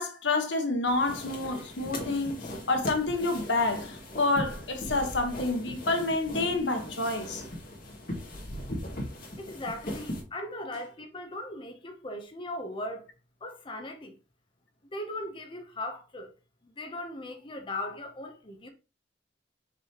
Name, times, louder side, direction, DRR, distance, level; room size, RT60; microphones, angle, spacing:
voice 1, 0.0-7.4, left 2 dB, 80° left, 1.3 m, -28 dB
sound 1, 0.9-10.2, left 1 dB, 50° left, 2.2 m, -39 dB
voice 2, 9.4-13.1 13.4-14.2 14.9-16.3 16.6-18.7, left 1 dB, 30° left, 0.8 m, -38 dB
5.9 x 5.4 x 2.9 m
head